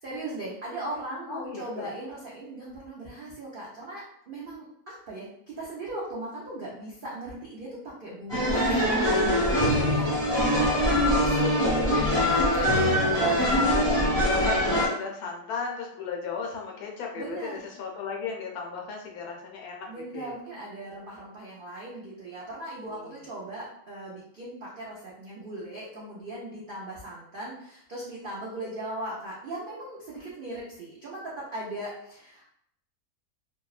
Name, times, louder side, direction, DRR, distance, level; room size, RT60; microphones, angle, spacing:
voice 1, 0.0-10.6 11.0-13.9 17.2-17.7 19.9-32.4, right 1 dB, 75° right, -6 dB, 0.5 m, -38 dB
voice 2, 1.3-1.9 10.5-11.2 13.7-20.3 22.9-23.2, left 5 dB, 75° left, 0 dB, 1.0 m, -36 dB
sound 1, 8.3-14.9, equal, 5° left, 0.6 m, -23 dB
2.7 x 2.1 x 2.3 m, 0.72 s
omnidirectional pair, 1.7 m